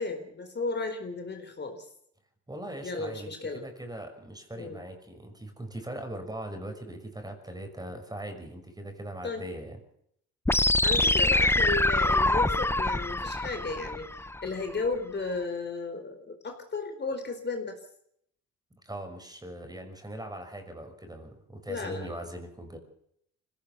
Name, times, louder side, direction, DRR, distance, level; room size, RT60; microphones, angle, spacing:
voice 1, 0.0-1.9 2.8-3.6 4.5-4.8 9.2-9.5 10.8-17.8 21.7-22.2, left 3 dB, 35° left, 5 dB, 4.2 m, -34 dB
voice 2, 2.5-9.8 18.8-22.8, right 1 dB, 15° right, 5 dB, 6.0 m, -40 dB
sound 1, 10.5-14.5, left 2 dB, 10° left, 0.8 m, -25 dB
24.0 x 17.0 x 6.9 m, 0.71 s
cardioid pair, 90°, 30 cm